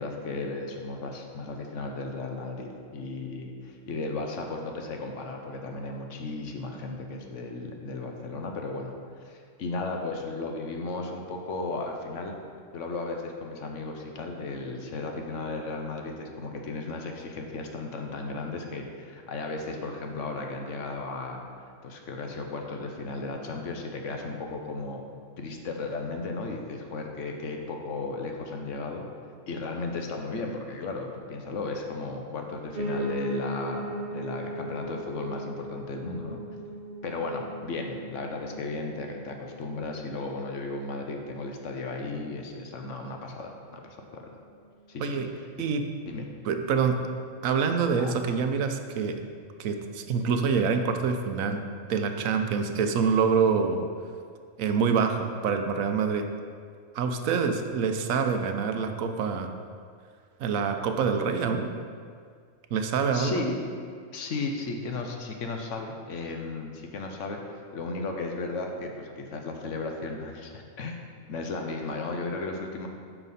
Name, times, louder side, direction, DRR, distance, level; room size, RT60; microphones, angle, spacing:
voice 1, 0.0-12.3 12.7-21.4 21.8-25.0 25.4-29.1 29.5-36.4 37.0-44.3 44.9-45.3 46.1-46.3 47.9-48.2 63.1-63.6 64.1-71.0 71.3-72.9, left 3 dB, 65° left, 3 dB, 1.1 m, -35 dB
Piano, 32.7-41.8 42.2-43.4 43.7-43.8 44.0-44.1 44.4-44.5 45.0-45.1, right 1 dB, 40° right, 1.0 m, -38 dB
voice 2, 46.5-47.0 47.4-49.2 49.6-53.9 54.6-56.3 56.9-59.5 60.4-61.7 62.7-63.5, right 5 dB, 75° right, 6 dB, 1.1 m, -26 dB
8.9 x 5.8 x 4.1 m, 2.1 s
omnidirectional pair, 1.4 m